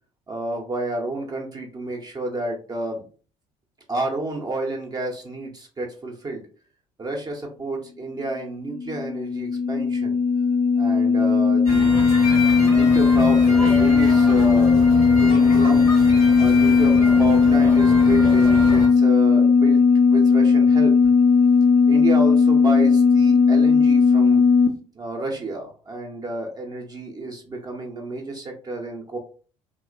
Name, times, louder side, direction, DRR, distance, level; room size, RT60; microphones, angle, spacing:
voice 1, 0.3-3.0 3.9-6.4 7.0-10.2 10.8-11.9 12.5-14.8 15.2-15.9 16.4-19.8 20.1-20.9 21.9-24.4 24.9-29.2, right 2 dB, 20° right, 1 dB, 0.5 m, -30 dB
sound 1, 8.5-24.7, left 5 dB, 45° left, 0.4 m, -17 dB
sound 2, 11.6-18.9, equal, 85° left, 0.9 m, -28 dB
2.8 x 2.1 x 2.4 m, 0.39 s
figure-of-eight pair, 55°, 18 cm